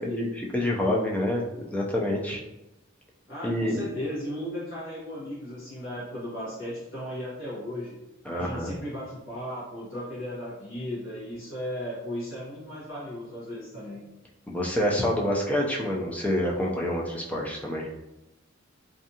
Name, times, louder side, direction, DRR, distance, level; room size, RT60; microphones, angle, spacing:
voice 1, 0.0-2.4 3.4-3.9 8.2-8.7 14.5-17.9, left 1 dB, 5° left, -2 dB, 0.4 m, -27 dB
voice 2, 3.3-7.9 8.3-14.0, equal, 70° left, -9 dB, 0.9 m, -36 dB
2.6 x 2.3 x 2.7 m, 0.93 s
head